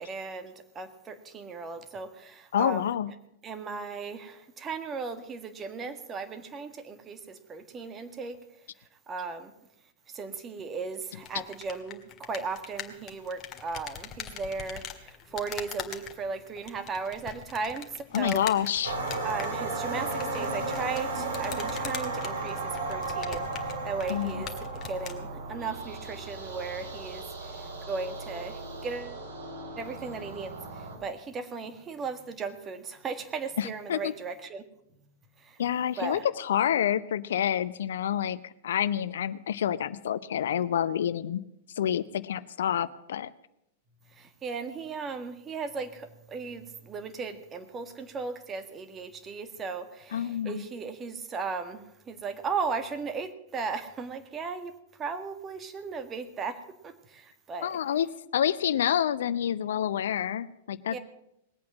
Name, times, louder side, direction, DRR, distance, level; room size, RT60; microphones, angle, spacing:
voice 1, 0.0-2.9 3.4-8.4 9.1-9.5 10.1-18.4 19.2-24.5 24.9-29.2 29.8-34.6 35.4-35.6 36.0-36.2 44.1-57.8 60.9-61.0, right 4 dB, 25° right, 8 dB, 1.7 m, -36 dB
voice 2, 2.5-3.1 18.1-19.0 24.1-24.4 33.6-34.1 35.6-41.4 41.8-43.3 50.1-50.6 57.6-58.1 58.3-61.0, left 9 dB, 65° left, 15 dB, 0.6 m, -28 dB
sound 1, 11.2-25.2, left 8 dB, 30° left, 1.8 m, -43 dB
sound 2, 18.8-31.0, right 3 dB, 70° right, 3.4 m, -35 dB
20.0 x 8.5 x 7.2 m, 0.81 s
figure-of-eight pair, 100°, 0 cm